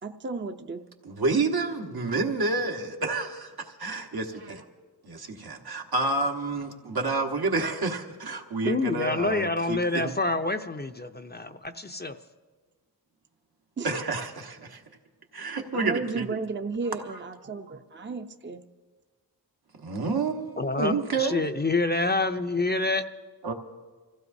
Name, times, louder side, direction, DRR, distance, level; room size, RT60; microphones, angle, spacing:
voice 1, 0.0-0.8 13.8-13.9 15.7-18.6, right 4 dB, 30° right, 7 dB, 0.7 m, -34 dB
voice 2, 1.0-3.5 3.8-4.6 5.0-10.1 13.8-14.8 15.3-16.3 19.8-21.4 23.4-23.5, right 3 dB, 65° right, 2 dB, 1.4 m, -29 dB
voice 3, 8.6-12.2 20.6-20.9 21.2-23.0, left 3 dB, 25° left, 7 dB, 0.6 m, -27 dB
27.0 x 15.5 x 2.7 m, 1.4 s
wide cardioid pair, 70°, 39 cm